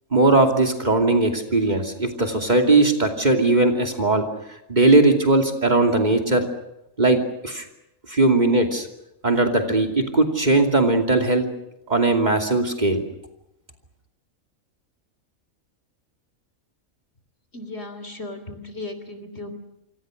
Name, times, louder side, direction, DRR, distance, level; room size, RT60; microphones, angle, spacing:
voice 1, 0.1-4.2 4.7-6.5 7.0-7.6 8.1-8.9 9.2-11.5 11.9-13.0, right 2 dB, 30° right, 3 dB, 2.8 m, -19 dB
voice 2, 17.5-19.5, left 2 dB, 50° left, 10 dB, 3.5 m, -36 dB
27.5 x 25.0 x 6.5 m, 0.86 s
omnidirectional pair, 1.4 m